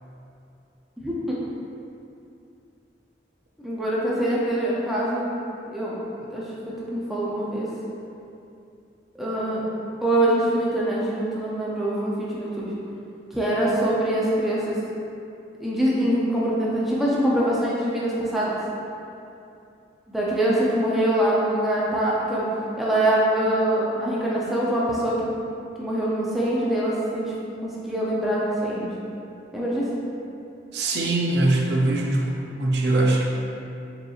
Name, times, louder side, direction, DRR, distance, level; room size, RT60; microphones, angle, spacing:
voice 1, 1.0-1.4 3.6-5.3 5.7-6.0 6.3-7.7 9.1-9.7 10.0-12.7 13.3-14.8 15.6-18.6 20.1-22.5 22.8-25.3 25.8-27.3 27.6-28.9 29.5-29.9, right 1 dB, ahead, -7 dB, 0.5 m, -24 dB
voice 2, 30.7-33.2, right 2 dB, 75° right, -1 dB, 0.5 m, -22 dB
4.9 x 3.0 x 2.4 m, 2.7 s
head